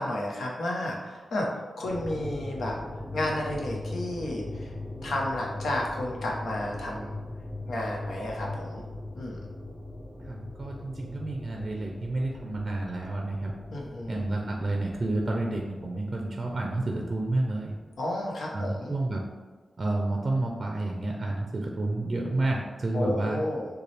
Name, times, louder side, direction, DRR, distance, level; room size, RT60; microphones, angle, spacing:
voice 1, 0.0-1.5 1.8-2.7 3.1-4.7 5.0-7.1 7.7-8.8 9.1-9.4 13.7-14.2 18.0-19.0 22.9-23.7, left 1 dB, 80° left, -2 dB, 1.0 m, -32 dB
sound 1, 1.8-18.6, left 2 dB, 15° left, 0.9 m, -40 dB
voice 2, 10.2-13.5 14.1-17.7 18.5-19.2 19.8-23.4, right 2 dB, 35° right, 0 dB, 0.5 m, -30 dB
6.7 x 2.3 x 3.3 m, 1.3 s
wide cardioid pair, 170°, 0 cm